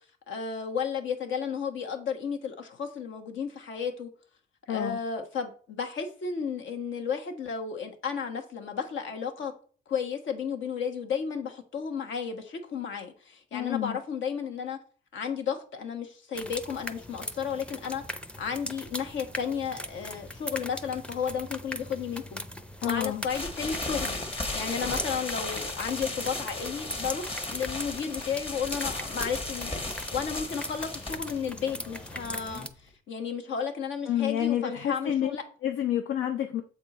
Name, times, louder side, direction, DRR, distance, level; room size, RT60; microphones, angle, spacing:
voice 1, 0.3-4.1 4.7-9.5 9.9-14.8 15.1-18.0 18.4-22.4 22.8-32.7 33.1-35.4, left 6 dB, 75° left, 1.3 m, -33 dB
voice 2, 4.7-5.0 13.5-14.0 22.8-23.2 34.1-35.4 35.6-36.6, left 11 dB, 90° left, 0.6 m, -29 dB
sound 1, 16.4-32.7, equal, 5° left, 0.5 m, -40 dB
sound 2, 23.3-32.9, left 2 dB, 30° left, 1.2 m, -36 dB
7.2 x 4.3 x 4.2 m
cardioid pair, 90°, 20 cm